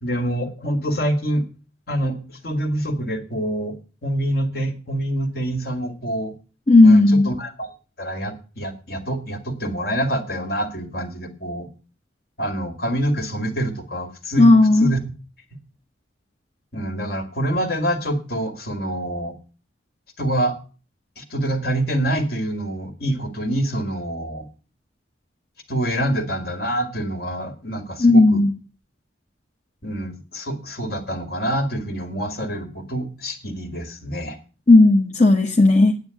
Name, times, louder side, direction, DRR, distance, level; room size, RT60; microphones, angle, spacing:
voice 1, 0.0-1.4 1.9-6.3 6.8-7.7 8.0-11.7 12.4-15.0 16.7-19.3 20.2-20.6 21.2-24.5 25.7-28.4 29.8-34.4, right 1 dB, 55° left, 5 dB, 2.1 m, -26 dB
voice 2, 6.7-7.3 14.4-14.9 28.0-28.5 34.7-35.9, left 2 dB, 40° left, 2 dB, 1.0 m, -13 dB
9.3 x 9.1 x 7.0 m, 0.36 s
head